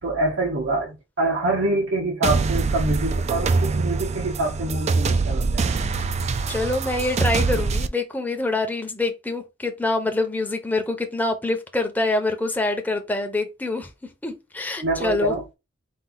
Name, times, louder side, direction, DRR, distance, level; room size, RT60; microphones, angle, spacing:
voice 1, 0.0-5.7 14.8-15.5, right 2 dB, 80° right, 1.0 m, -25 dB
sound 1, 2.2-7.9, right 4 dB, 35° right, 0.3 m, -24 dB
voice 2, 6.5-13.9 14.2-15.3, left 2 dB, 10° left, 0.7 m, -25 dB
4.3 x 2.3 x 3.9 m
head